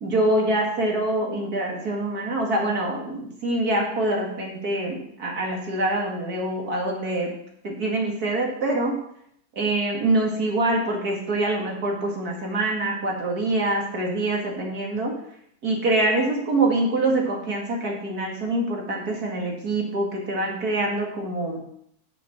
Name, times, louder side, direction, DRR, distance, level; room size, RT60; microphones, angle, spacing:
voice 1, 0.0-7.4 7.6-9.0 9.6-15.2 15.6-21.6, right 2 dB, 70° right, -1 dB, 2.7 m, -25 dB
9.7 x 6.6 x 6.0 m, 0.72 s
omnidirectional pair, 1.7 m